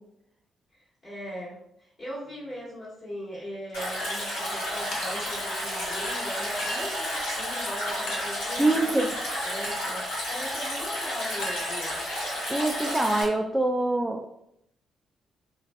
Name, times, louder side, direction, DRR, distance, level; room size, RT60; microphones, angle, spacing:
voice 1, 0.8-8.9 9.4-12.0, equal, 45° left, -9 dB, 1.0 m, -39 dB
Stream, 3.7-13.2, left 1 dB, 80° left, 0.9 m, -31 dB
Chink clink, 4.0-4.5 4.9-5.4 6.0-7.0 8.1-8.5 9.6-10.0 11.4-12.2, left 1 dB, 65° left, 0.5 m, -39 dB
voice 2, 8.6-9.2 12.5-14.4, right 2 dB, 10° right, 2 dB, 0.3 m, -25 dB
2.5 x 2.3 x 2.3 m, 0.75 s
hypercardioid pair, 40°, 0 cm